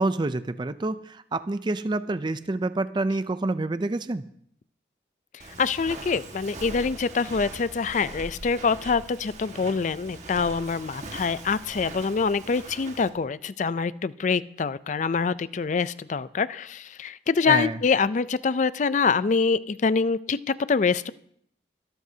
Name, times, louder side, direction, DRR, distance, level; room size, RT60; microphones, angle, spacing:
voice 1, 0.0-4.3 17.5-17.8, right 2 dB, 25° right, 12 dB, 0.4 m, -27 dB
Walk footsteps, 5.4-13.1, right 2 dB, 40° right, 1.6 m, -41 dB
voice 2, 5.6-21.1, left 5 dB, 45° left, 16 dB, 0.4 m, -25 dB
23.5 x 12.5 x 2.8 m, 0.68 s
head